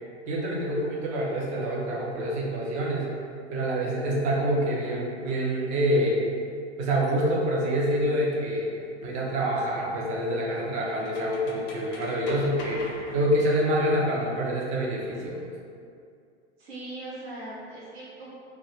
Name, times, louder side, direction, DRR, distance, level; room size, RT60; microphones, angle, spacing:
voice 1, 0.3-3.1 3.5-6.3 6.8-8.7 9.0-15.5, equal, 25° right, -3 dB, 0.4 m, -26 dB
sound 1, 7.0-7.1 9.5-13.6, left 1 dB, 55° left, 0.5 m, -43 dB
voice 2, 16.6-18.3, right 2 dB, 65° right, -7 dB, 0.7 m, -39 dB
2.2 x 2.1 x 3.0 m, 2.3 s
figure-of-eight pair, 85°, 34 cm